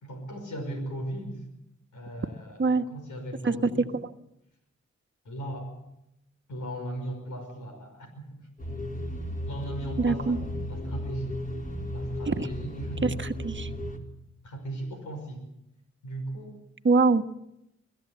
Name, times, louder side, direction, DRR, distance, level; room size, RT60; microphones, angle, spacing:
voice 1, 0.0-1.4 1.9-3.9 5.2-5.7 6.5-8.5 9.4-11.3 11.9-13.1 14.4-15.4 16.0-16.6, right 1 dB, 80° left, 4 dB, 5.6 m, -37 dB
voice 2, 3.4-4.1 10.0-10.4 12.3-12.5 13.0-13.7 16.8-17.2, right 3 dB, 40° right, 7 dB, 1.4 m, -24 dB
sound 1, 8.6-14.0, left 1 dB, 25° left, 4.4 m, -35 dB
22.5 x 14.5 x 8.4 m, 0.85 s
supercardioid pair, 45°, 30 cm